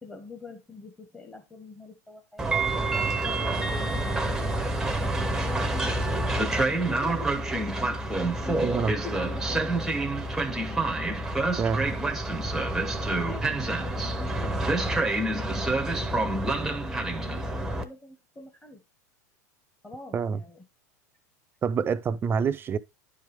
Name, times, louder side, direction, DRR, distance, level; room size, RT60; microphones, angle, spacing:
voice 1, 0.0-2.7 3.1-7.9 8.4-10.1 13.2-16.4 16.6-18.8 19.8-20.6, left 2 dB, 10° left, 1.4 m, -45 dB
Train, 2.4-17.8, right 2 dB, 5° right, 0.9 m, -27 dB
voice 2, 8.6-8.9 11.6-11.9 20.1-20.4 21.6-22.8, right 6 dB, 25° right, 0.5 m, -26 dB
10.0 x 4.6 x 3.5 m
hypercardioid pair, 115°, 9 cm